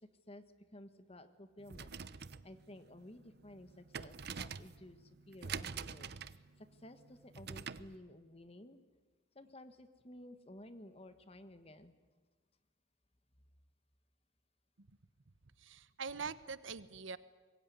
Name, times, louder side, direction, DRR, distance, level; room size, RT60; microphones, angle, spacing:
voice 1, 0.7-8.8 9.3-11.9, left 1 dB, 30° left, 10 dB, 1.4 m, -55 dB
sound 1, 1.6-8.0, right 6 dB, 55° right, 0.8 m, -46 dB
voice 2, 15.6-17.2, right 5 dB, 85° right, 15 dB, 1.0 m, -43 dB
25.5 x 22.0 x 9.4 m, 1.3 s
head